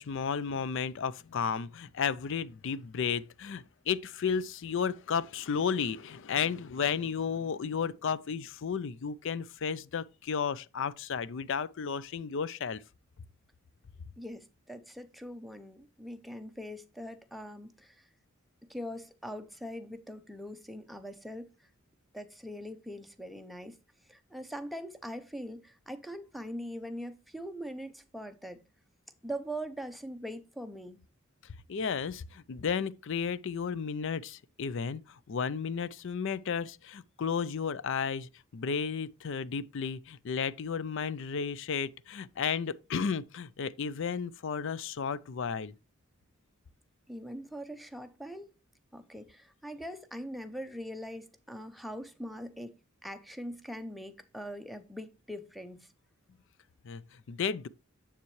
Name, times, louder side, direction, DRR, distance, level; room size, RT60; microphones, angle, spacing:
voice 1, 0.0-12.8 31.7-45.7 56.8-57.0 57.3-57.7, left 6 dB, 65° left, 0.5 m, -33 dB
voice 2, 14.2-18.1 18.7-21.5 22.1-23.8 24.1-28.6 29.2-31.0 47.1-48.5 48.9-52.8 53.0-55.9, equal, ahead, 0.7 m, -42 dB
7.4 x 7.0 x 3.1 m
head